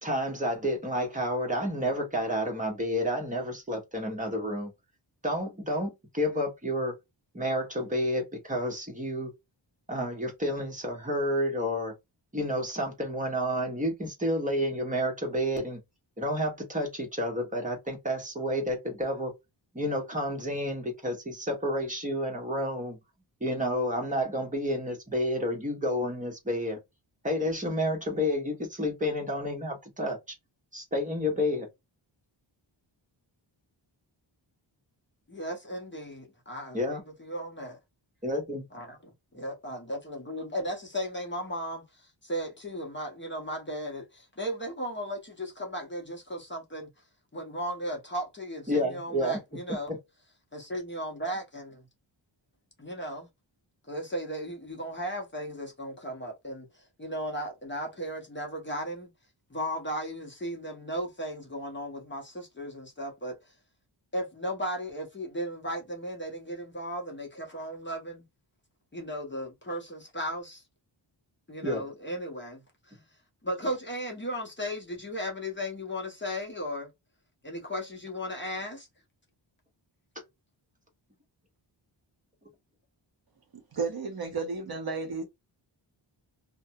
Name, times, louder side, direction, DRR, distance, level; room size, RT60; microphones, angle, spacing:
voice 1, 0.0-4.7 5.2-6.9 7.3-9.3 9.9-11.9 12.3-15.8 16.2-19.3 19.7-23.0 23.4-26.8 27.2-30.2 30.7-31.7 36.7-37.0 38.2-38.6 48.7-49.4 71.6-71.8, equal, 15° right, 1.1 m, -30 dB
voice 2, 35.3-37.8 38.7-46.9 47.3-50.0 50.5-51.8 52.8-53.3 53.9-59.1 59.5-63.5 64.1-68.2 68.9-70.6 71.5-73.0 73.4-76.9 77.4-78.9, equal, 25° left, 0.9 m, -36 dB
voice 3, 83.7-85.2, right 4 dB, 50° right, 0.8 m, -32 dB
2.6 x 2.2 x 2.6 m
wide cardioid pair, 140°, 46 cm